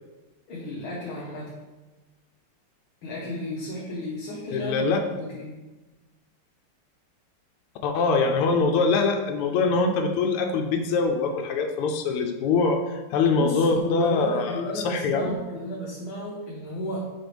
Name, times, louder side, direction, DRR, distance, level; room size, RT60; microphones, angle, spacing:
voice 1, 0.5-1.5 3.0-5.6 13.4-17.0, left 2 dB, 70° left, -5 dB, 1.7 m, -33 dB
voice 2, 4.5-5.0 7.8-15.3, left 4 dB, 90° left, 3 dB, 1.6 m, -23 dB
5.9 x 5.0 x 3.3 m, 1.2 s
omnidirectional pair, 2.4 m